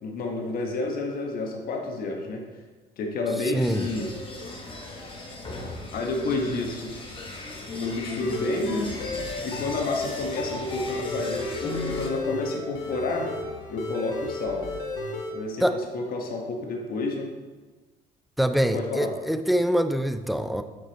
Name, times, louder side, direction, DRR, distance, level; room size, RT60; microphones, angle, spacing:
voice 1, 0.0-2.5 3.0-4.1 5.9-6.9 7.8-8.9 9.4-13.3 13.7-14.7 15.3-17.3 18.7-19.1, left 3 dB, 60° left, 2 dB, 1.3 m, -30 dB
voice 2, 3.5-3.9 15.6-15.8 18.4-20.6, equal, ahead, 8 dB, 0.4 m, -24 dB
sound 1, 3.6-12.1, left 2 dB, 30° left, 1.4 m, -37 dB
sound 2, 8.2-15.3, left 2 dB, 90° left, 1.0 m, -33 dB
6.2 x 5.3 x 4.0 m, 1.3 s
cardioid pair, 110°, 17 cm